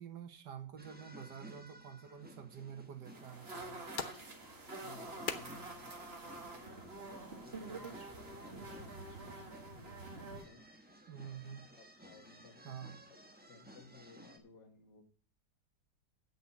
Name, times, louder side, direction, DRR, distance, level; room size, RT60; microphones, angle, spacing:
voice 1, 0.0-3.8 11.1-11.6 12.7-13.0, right 8 dB, 80° right, 7 dB, 1.8 m, -48 dB
sound 1, 0.8-14.4, right 1 dB, 5° right, 0.9 m, -57 dB
sound 2, 3.0-10.4, right 3 dB, 40° right, 1.9 m, -47 dB
sound 3, 3.4-8.5, left 6 dB, 45° left, 0.6 m, -48 dB
voice 2, 4.8-10.7 11.8-12.8 13.1-13.2 13.5-15.0, left 4 dB, 85° left, 5 dB, 2.2 m, -59 dB
8.3 x 6.4 x 8.3 m, 0.43 s
omnidirectional pair, 1.8 m